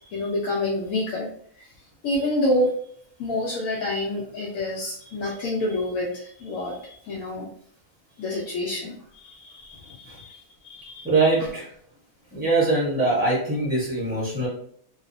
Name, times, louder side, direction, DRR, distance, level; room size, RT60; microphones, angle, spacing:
voice 1, 0.1-1.3 1.6-1.7 2.0-2.7 3.2-7.5 8.2-9.0 9.2-10.4 10.6-11.1, left 1 dB, 80° left, -4 dB, 1.0 m, -28 dB
voice 2, 11.0-11.7 12.3-14.5, right 2 dB, 15° right, -7 dB, 0.4 m, -22 dB
2.7 x 2.0 x 2.5 m, 0.62 s
omnidirectional pair, 1.5 m